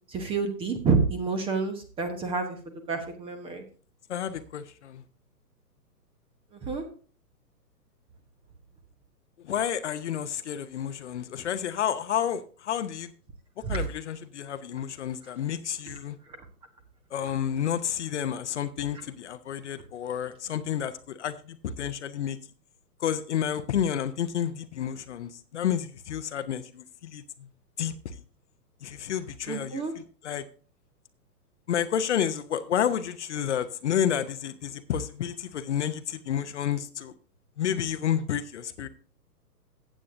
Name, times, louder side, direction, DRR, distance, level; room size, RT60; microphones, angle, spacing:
voice 1, 0.1-2.6 2.9-3.6 6.6-6.8 13.7-13.8 29.5-29.9, right 4 dB, 10° right, 1.0 m, -28 dB
voice 2, 4.1-5.0 9.4-13.1 13.7-16.2 17.1-22.4 23.0-27.2 27.8-27.9 28.8-30.4 31.7-37.1 37.6-38.9, left 9 dB, 45° left, 0.9 m, -30 dB
15.0 x 8.5 x 2.6 m
figure-of-eight pair, 130°, 49 cm